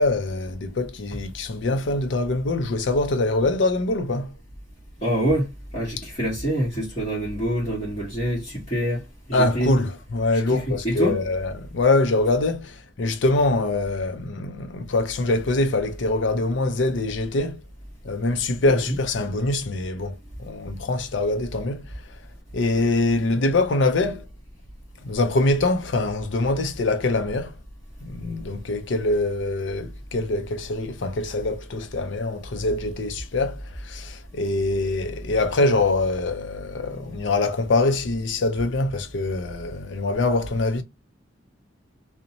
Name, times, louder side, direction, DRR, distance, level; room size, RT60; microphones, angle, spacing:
voice 1, 0.0-4.3 9.3-17.6 18.0-21.8 22.5-24.2 25.0-27.5 28.0-40.8, left 2 dB, 70° left, 0.5 m, -24 dB
voice 2, 5.0-9.0 9.3-9.8 10.3-11.2 18.7-18.9, equal, 35° left, 1.1 m, -26 dB
2.6 x 2.0 x 2.7 m
head